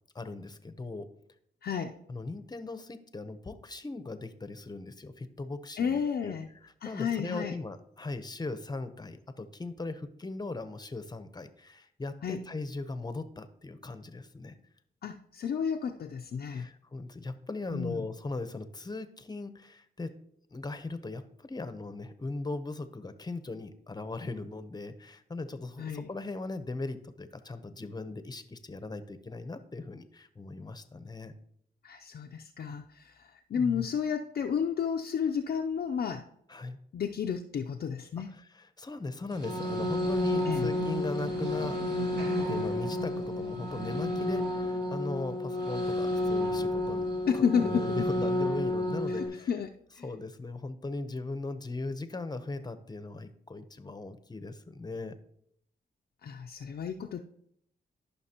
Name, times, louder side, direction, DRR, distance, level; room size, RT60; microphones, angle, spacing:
voice 1, 0.1-1.1 2.1-6.4 6.6-14.6 16.5-20.2 20.5-31.3 33.5-33.9 36.5-36.8 38.8-41.8 42.5-47.1 47.3-49.5 50.0-55.1, left 3 dB, 25° left, 11 dB, 0.8 m, -39 dB
voice 2, 1.6-2.0 5.8-6.5 6.8-7.6 12.2-12.4 15.0-16.7 17.7-18.0 25.8-26.1 31.8-36.2 36.9-38.3 40.5-40.7 47.3-48.1 49.1-50.1 56.2-57.2, left 7 dB, 60° left, 2 dB, 0.5 m, -32 dB
sound 1, 39.3-49.3, left 1 dB, 65° right, 2.7 m, -31 dB
13.0 x 5.8 x 2.9 m, 0.71 s
cardioid pair, 75°, 18 cm